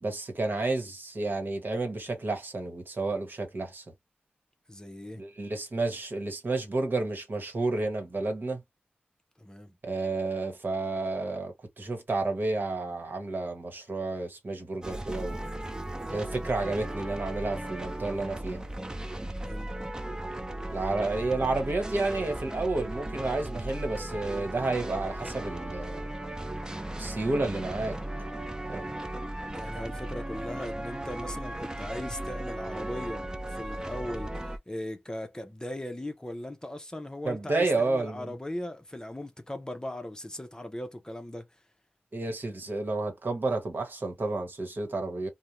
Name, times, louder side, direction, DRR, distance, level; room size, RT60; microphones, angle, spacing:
voice 1, 0.0-3.8 5.1-8.6 9.8-15.5 16.1-18.6 20.7-26.1 27.0-28.0 28.7-28.9 37.2-38.3 42.1-45.3, right 3 dB, 55° right, 1.1 m, -31 dB
voice 2, 4.7-5.2 9.4-9.7 19.4-19.7 29.5-41.6, left 1 dB, 20° left, 0.7 m, -39 dB
sound 1, 14.8-34.6, right 1 dB, 20° right, 0.5 m, -36 dB
2.5 x 2.2 x 3.0 m
cardioid pair, 40°, 4 cm